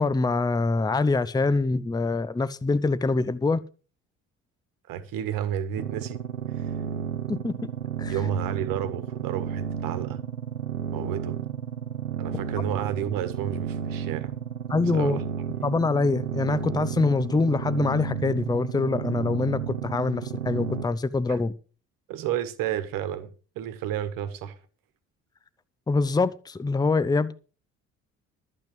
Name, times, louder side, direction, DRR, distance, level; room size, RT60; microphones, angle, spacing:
voice 1, 0.0-3.6 7.3-7.7 8.0-8.2 14.7-15.2 15.6-21.5 25.9-27.3, left 3 dB, 10° left, 0.7 m, -24 dB
voice 2, 4.9-6.2 6.6-6.7 8.1-10.2 10.9-11.4 12.2-14.3 14.9-15.2 21.3-21.4 22.1-24.6, right 10 dB, 60° right, 1.5 m, -31 dB
sound 1, 5.8-20.8, right 8 dB, 90° right, 0.8 m, -32 dB
12.0 x 7.7 x 6.2 m
figure-of-eight pair, 50°, 39 cm